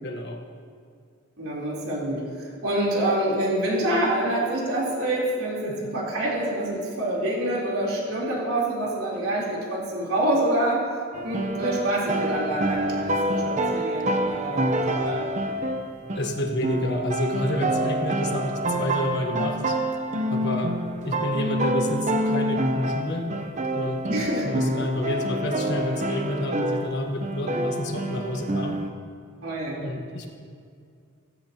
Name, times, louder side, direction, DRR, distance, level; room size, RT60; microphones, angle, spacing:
voice 1, 0.0-0.4 16.1-19.8 20.3-20.8 21.0-23.3 23.7-28.8 29.8-30.3, left 1 dB, 55° left, 3 dB, 1.3 m, -29 dB
voice 2, 1.4-10.8 11.2-14.6 14.9-15.3 24.1-24.5 29.4-29.8, right 1 dB, 85° right, -5 dB, 3.6 m, -26 dB
sound 1, 11.1-27.0 27.2-28.9, right 1 dB, 35° right, 0.8 m, -27 dB
16.5 x 15.0 x 2.9 m, 2.2 s
head